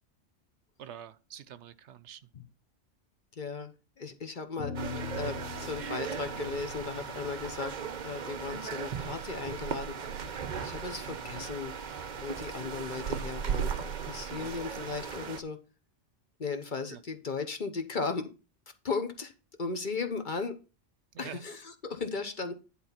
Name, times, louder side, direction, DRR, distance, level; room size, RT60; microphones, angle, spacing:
voice 1, 0.8-2.3 14.4-14.6 16.9-17.0 21.1-21.4, right 9 dB, 70° right, 0.9 m, -46 dB
voice 2, 3.3-7.7 8.0-9.9 10.5-11.8 12.1-13.7 14.0-15.6 16.4-18.3 18.8-19.3 19.6-20.6 21.2-22.6, left 4 dB, 45° left, 1.1 m, -36 dB
sound 1, 4.6-9.1, left 6 dB, 85° left, 1.7 m, -43 dB
sound 2, 4.7-15.4, right 7 dB, 45° right, 0.7 m, -37 dB
10.5 x 4.1 x 5.8 m
omnidirectional pair, 1.3 m